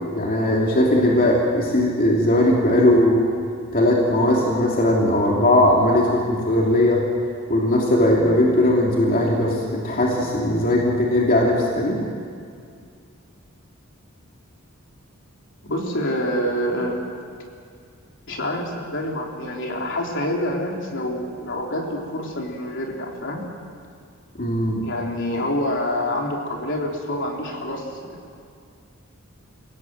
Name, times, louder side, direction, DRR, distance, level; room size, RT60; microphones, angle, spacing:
voice 1, 0.1-3.2 3.7-7.0 7.5-12.0 24.4-24.8, left 1 dB, 45° left, -3 dB, 3.1 m, -19 dB
voice 2, 15.6-17.0 18.3-23.4 24.8-28.2, left 1 dB, 60° left, 0 dB, 3.7 m, -27 dB
29.0 x 17.5 x 7.9 m, 2.2 s
head